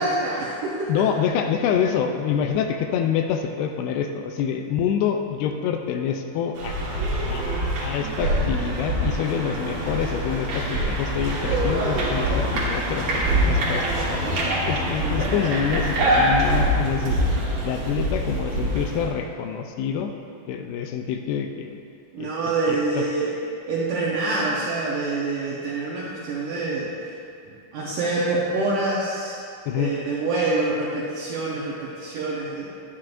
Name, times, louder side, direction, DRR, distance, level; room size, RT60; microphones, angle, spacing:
voice 1, 0.0-1.0 15.0-15.2 22.1-23.4 23.7-26.9 27.4-29.4 29.7-32.7, right 3 dB, 75° right, -6 dB, 1.9 m, -26 dB
voice 2, 0.9-6.7 7.3-17.2 17.6-20.1 20.5-21.8 22.2-22.3 22.7-23.1 29.7-29.9, left 8 dB, 80° left, 5 dB, 2.5 m, -26 dB
sound 1, 6.6-19.1, right 1 dB, 55° right, 2.3 m, -24 dB
12.0 x 9.1 x 2.5 m, 2.4 s
omnidirectional pair, 4.7 m